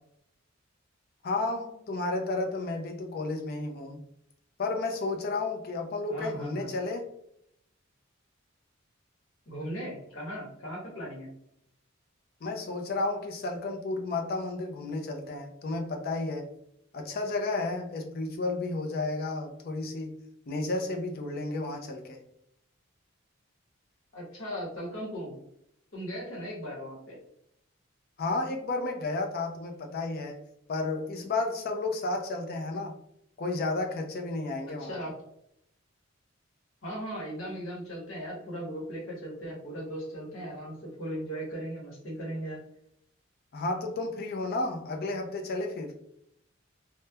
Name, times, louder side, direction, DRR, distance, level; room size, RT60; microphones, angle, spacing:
voice 1, 1.2-4.0 4.6-7.1 12.4-16.5 16.9-20.1 20.5-22.2 28.2-30.4 30.7-32.9 33.4-35.0 43.5-45.9, left 2 dB, 50° left, 2 dB, 0.4 m, -32 dB
voice 2, 6.1-6.7 9.5-11.3 24.1-25.4 25.9-27.2 34.8-35.1 36.8-42.6, equal, 70° left, -4 dB, 1.0 m, -38 dB
3.0 x 2.1 x 2.2 m, 0.73 s
head